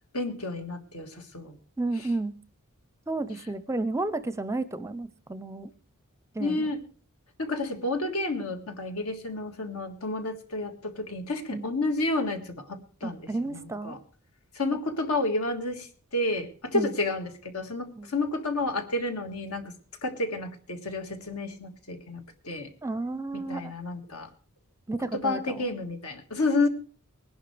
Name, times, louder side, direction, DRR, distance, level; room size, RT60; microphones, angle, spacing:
voice 1, 0.1-1.5 2.0-2.1 6.4-6.8 7.4-14.0 14.6-15.9 16.1-19.7 20.0-22.7 23.3-24.3 25.1-26.7, left 2 dB, 75° left, 6 dB, 1.7 m, -30 dB
voice 2, 1.8-2.3 3.1-5.7 6.4-6.7 11.5-11.7 13.0-14.0 16.7-16.9 18.0-18.1 22.8-23.7 24.9-25.7, right 2 dB, 15° right, 14 dB, 0.5 m, -32 dB
20.0 x 11.0 x 3.3 m, 0.38 s
head